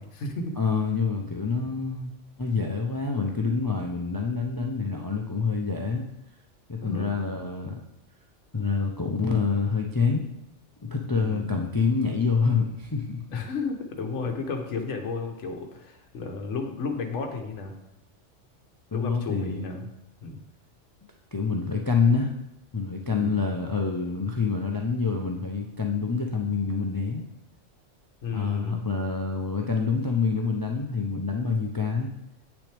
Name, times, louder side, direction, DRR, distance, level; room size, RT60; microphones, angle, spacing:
voice 1, 0.0-0.5 6.8-7.1 11.1-11.6 13.3-17.7 18.9-19.8 20.2-20.4 23.1-23.4 28.2-28.9, left 4 dB, 70° left, 3 dB, 1.2 m, -33 dB
voice 2, 0.6-2.1 2.4-6.0 6.7-7.8 8.5-10.3 10.8-13.2 18.9-19.8 21.3-22.3 22.7-27.2 28.3-32.1, left 5 dB, 35° left, 1 dB, 0.3 m, -27 dB
9.0 x 6.1 x 3.4 m, 0.88 s
omnidirectional pair, 1.3 m